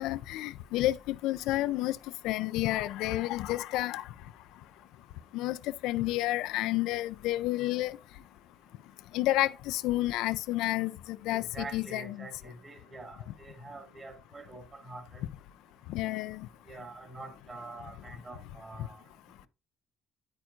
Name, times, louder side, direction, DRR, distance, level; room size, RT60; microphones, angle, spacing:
voice 1, 0.0-2.0 2.2-4.0 5.3-5.6 5.8-7.9 9.1-12.3 15.9-16.5, left 16 dB, 90° left, 0.4 m, -30 dB
voice 2, 11.3-15.2 16.7-19.0, right 2 dB, 20° right, 1.7 m, -45 dB
9.0 x 8.8 x 2.5 m
cardioid pair, 170°, 0 cm